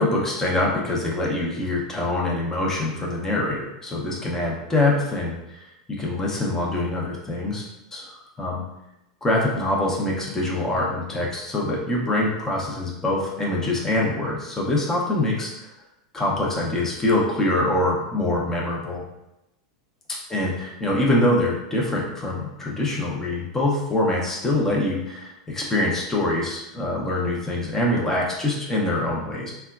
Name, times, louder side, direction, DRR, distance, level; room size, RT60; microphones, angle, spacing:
voice 1, 0.0-5.7 6.0-7.6 7.9-8.6 9.2-15.7 16.1-19.0 20.3-29.5, left 1 dB, 15° left, -3 dB, 0.7 m, -24 dB
3.5 x 2.2 x 2.4 m, 0.90 s
hypercardioid pair, 105°, 3 cm